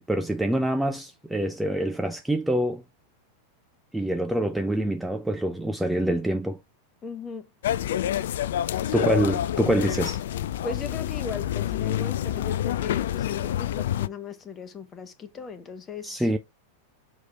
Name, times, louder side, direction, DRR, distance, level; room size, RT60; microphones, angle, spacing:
voice 1, 0.0-2.8 3.9-6.6 8.9-10.2 16.0-16.4, right 1 dB, 5° right, 0.6 m, -25 dB
voice 2, 7.0-7.5 8.8-9.2 10.6-16.4, left 5 dB, 25° left, 1.2 m, -37 dB
sound 1, 7.6-14.1, left 11 dB, 60° left, 0.4 m, -27 dB
6.1 x 4.7 x 3.4 m
figure-of-eight pair, 90°, 0 cm